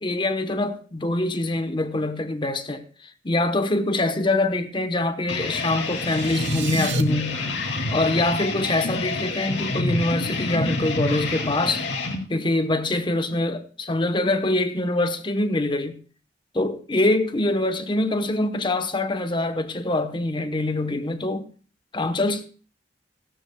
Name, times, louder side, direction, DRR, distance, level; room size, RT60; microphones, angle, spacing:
voice 1, 0.0-2.8 3.2-7.4 7.9-11.9 12.3-16.0 16.5-21.5 21.9-22.5, left 2 dB, 30° left, 0.9 m, -24 dB
sound 1, 5.3-12.2, left 2 dB, 90° left, 2.3 m, -27 dB
sound 2, 5.8-7.0, right 8 dB, 80° right, 1.0 m, -34 dB
17.0 x 14.0 x 2.2 m
head